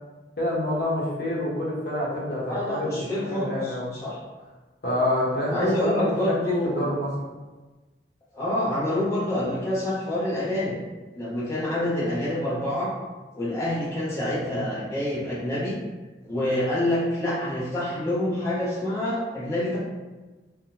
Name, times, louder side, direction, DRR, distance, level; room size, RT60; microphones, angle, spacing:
voice 1, 0.4-3.9 4.8-6.3 6.6-7.3, left 1 dB, 60° left, -5 dB, 1.0 m, -27 dB
voice 2, 2.5-4.2 5.5-6.9 8.3-10.8 11.1-12.9 13.3-15.8 16.2-19.8, left 1 dB, 15° left, -9 dB, 0.9 m, -27 dB
3.5 x 2.3 x 2.8 m, 1.2 s
head